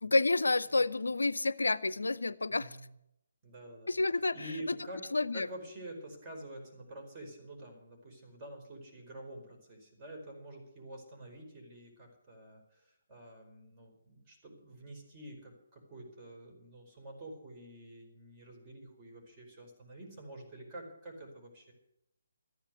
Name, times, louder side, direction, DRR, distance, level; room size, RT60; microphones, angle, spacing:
voice 1, 0.0-2.7 3.9-4.4 4.7-4.8 5.1-5.5, left 2 dB, 70° left, 19 dB, 0.5 m, -29 dB
voice 2, 2.5-2.9 3.4-3.9 4.3-5.1 5.3-21.7, right 1 dB, 20° right, 0 dB, 4.8 m, -48 dB
14.0 x 10.5 x 8.2 m, 0.79 s
figure-of-eight pair, 140°, 0 cm